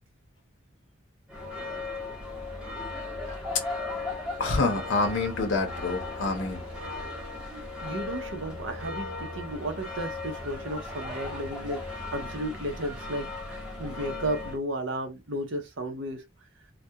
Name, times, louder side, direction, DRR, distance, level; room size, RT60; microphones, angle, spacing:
sound 1, 1.3-14.6, left 2 dB, 5° right, 0.9 m, -37 dB
voice 1, 4.4-6.6, left 3 dB, 70° left, 0.7 m, -27 dB
voice 2, 7.8-11.8 12.1-13.3 13.8-16.2, right 1 dB, 70° right, 0.6 m, -33 dB
2.3 x 2.1 x 2.8 m
head